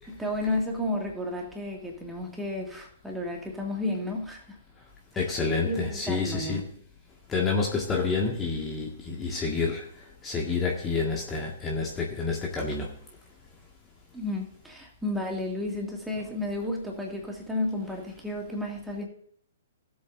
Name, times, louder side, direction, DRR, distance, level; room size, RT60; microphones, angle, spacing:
voice 1, 0.1-4.6 5.1-6.6 14.1-19.0, left 1 dB, 5° right, 0 dB, 2.2 m, -32 dB
voice 2, 5.2-6.6 7.3-9.9 10.2-12.9, left 4 dB, 15° left, -1 dB, 1.8 m, -28 dB
18.0 x 7.8 x 2.7 m, 0.66 s
figure-of-eight pair, 115°, 0 cm